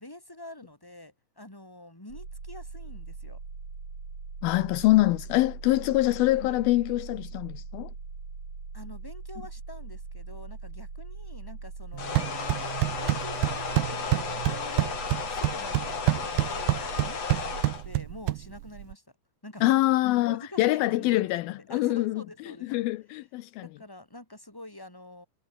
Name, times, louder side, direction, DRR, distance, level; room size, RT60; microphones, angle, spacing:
voice 1, 0.0-3.4 5.8-5.9 8.7-12.5 12.9-19.0 19.4-19.9 20.3-21.3 21.7-22.8 23.6-25.3, left 1 dB, 5° left, 5.1 m, -46 dB
sound 1, 2.1-12.1, right 4 dB, 45° right, 6.9 m, -41 dB
voice 2, 4.4-7.9 19.6-22.2 22.6-23.7, left 17 dB, 90° left, 2.1 m, -24 dB
sound 2, 11.9-18.9, right 17 dB, 85° right, 2.1 m, -29 dB
sound 3, 12.0-17.8, left 5 dB, 35° left, 4.1 m, -34 dB
omnidirectional pair, 5.3 m